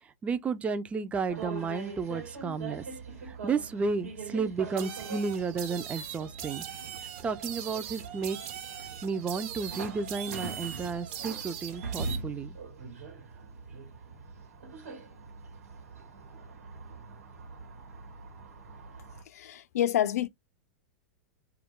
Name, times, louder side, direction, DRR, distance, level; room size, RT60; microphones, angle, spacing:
voice 1, 0.2-2.8 3.3-6.7 7.2-8.4 9.0-12.6, right 5 dB, 15° right, 0.3 m, -32 dB
sound 1, 1.3-19.2, right 3 dB, 80° right, 1.1 m, -43 dB
sound 2, 4.8-12.2, right 9 dB, 50° right, 0.7 m, -41 dB
voice 2, 19.3-20.3, left 11 dB, 75° left, 0.4 m, -28 dB
2.3 x 2.2 x 3.5 m
hypercardioid pair, 115°, 8 cm